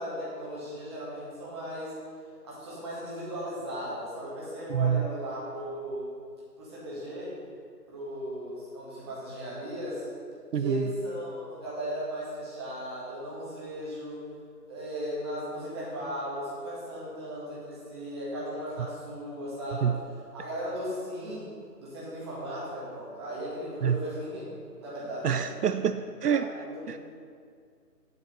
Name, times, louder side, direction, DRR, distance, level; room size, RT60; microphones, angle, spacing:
voice 1, 0.0-1.9 2.4-6.1 6.6-7.3 7.9-10.1 10.5-14.2 14.7-19.9 20.3-21.4 21.8-24.4 24.8-25.5 26.3-27.0, equal, 15° right, -7 dB, 1.7 m, -36 dB
voice 2, 4.7-5.0 10.5-10.9 19.8-19.9 23.8-23.9 25.2-26.4 26.9-27.0, right 8 dB, 70° right, 10 dB, 0.5 m, -26 dB
8.1 x 7.9 x 5.4 m, 2.2 s
figure-of-eight pair, 160°, 48 cm